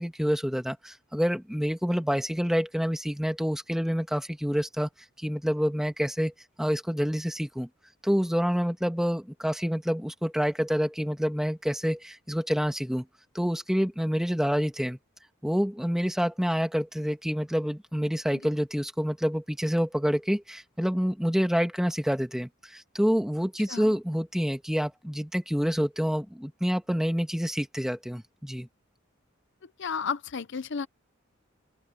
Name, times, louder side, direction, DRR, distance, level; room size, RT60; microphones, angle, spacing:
voice 1, 0.0-4.9 5.2-6.3 6.6-7.7 8.0-13.1 13.3-15.0 15.4-28.7, equal, ahead, 1.8 m, -27 dB
voice 2, 29.8-30.9, left 6 dB, 60° left, 0.6 m, -32 dB
open air
head